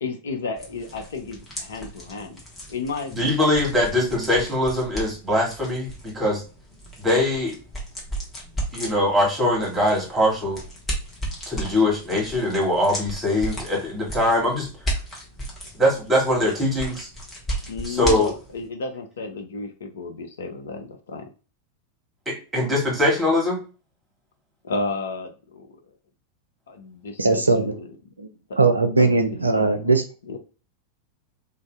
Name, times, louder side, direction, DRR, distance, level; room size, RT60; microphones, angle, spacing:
voice 1, 0.0-2.4 2.7-3.4 17.7-21.3 24.6-25.8 26.7-28.0 28.5-28.6 29.0-29.2 29.6-29.9 30.2-30.4, left 3 dB, 65° left, 6 dB, 0.5 m, -33 dB
sound 1, 0.6-18.7, right 1 dB, 15° left, 1.0 m, -35 dB
voice 2, 3.1-6.4 7.0-7.5 8.7-10.6 11.5-14.7 15.8-17.1 17.9-18.3 22.2-23.6, left 1 dB, 10° right, -2 dB, 1.4 m, -22 dB
voice 3, 27.2-27.7 28.2-28.3 28.6-30.0, right 3 dB, 80° right, 7 dB, 0.4 m, -19 dB
2.6 x 2.3 x 3.1 m, 0.35 s
figure-of-eight pair, 90°, 0 cm